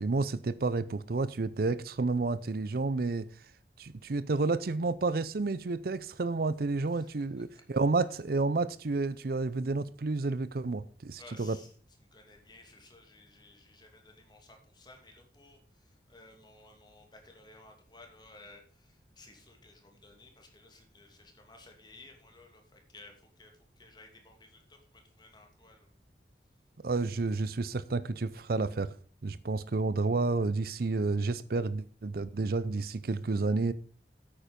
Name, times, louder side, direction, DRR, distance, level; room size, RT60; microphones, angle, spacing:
voice 1, 0.0-3.3 3.8-11.6 26.8-29.0 29.2-33.7, right 3 dB, 55° right, 0.6 m, -30 dB
voice 2, 6.9-7.6 11.1-25.9, left 2 dB, 25° left, 2.6 m, -56 dB
9.3 x 8.9 x 5.2 m
head